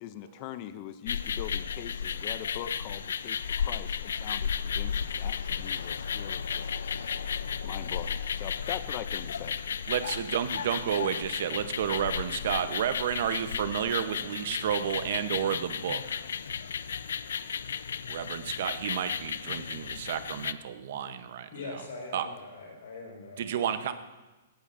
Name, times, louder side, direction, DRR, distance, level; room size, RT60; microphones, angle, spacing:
voice 1, 0.0-6.7 7.6-9.6, left 11 dB, 25° left, 13 dB, 0.4 m, -42 dB
sound 1, 1.1-20.5, left 7 dB, 85° left, 0.4 m, -34 dB
voice 2, 9.9-16.2 18.1-21.5 22.1-22.3 23.4-23.9, right 9 dB, 45° right, 11 dB, 0.7 m, -31 dB
voice 3, 21.5-23.5, left 3 dB, 70° left, -1 dB, 4.7 m, -42 dB
17.0 x 12.0 x 2.5 m, 1.2 s
hypercardioid pair, 180°, 0 cm